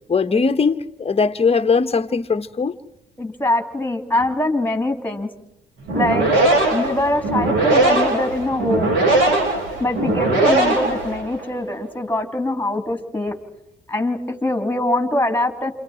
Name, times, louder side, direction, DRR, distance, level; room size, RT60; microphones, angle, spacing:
voice 1, 0.1-2.8, left 5 dB, 30° left, 1.3 m, -19 dB
voice 2, 3.2-5.3 5.9-6.3 6.7-8.9 9.8-13.3 13.9-15.7, left 1 dB, 10° left, 3.4 m, -23 dB
sound 1, 5.8-11.5, right 2 dB, 85° right, 7.8 m, -19 dB
28.5 x 28.5 x 4.5 m
cardioid pair, 90°, 20 cm